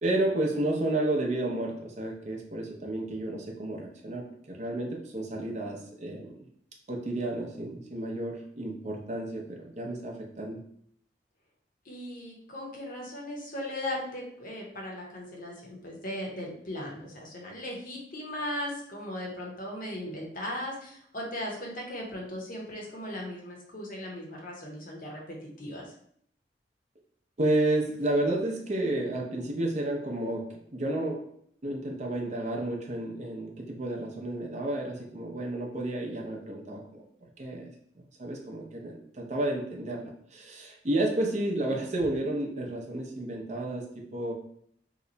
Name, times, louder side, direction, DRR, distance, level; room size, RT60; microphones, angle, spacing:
voice 1, 0.0-6.3 6.9-10.6 27.4-31.3 31.6-37.0 37.4-37.7 38.2-44.3, right 1 dB, 40° right, 0 dB, 0.6 m, -31 dB
voice 2, 11.8-25.9, left 1 dB, 50° left, -2 dB, 0.9 m, -38 dB
2.9 x 2.2 x 3.9 m, 0.65 s
head